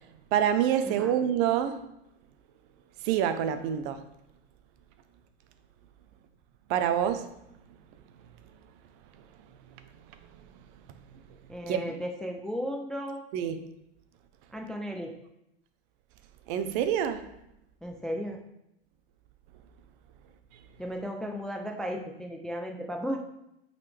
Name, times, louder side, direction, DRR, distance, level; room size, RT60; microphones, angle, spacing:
voice 1, 0.3-1.8 3.0-4.0 6.7-7.3 11.7-11.8 13.3-13.6 16.5-17.2, right 9 dB, 50° right, 10 dB, 0.7 m, -26 dB
voice 2, 11.5-13.2 14.5-15.1 17.8-18.4 20.8-23.2, equal, ahead, 3 dB, 0.4 m, -35 dB
8.6 x 4.1 x 3.3 m, 0.84 s
hypercardioid pair, 120°, 32 cm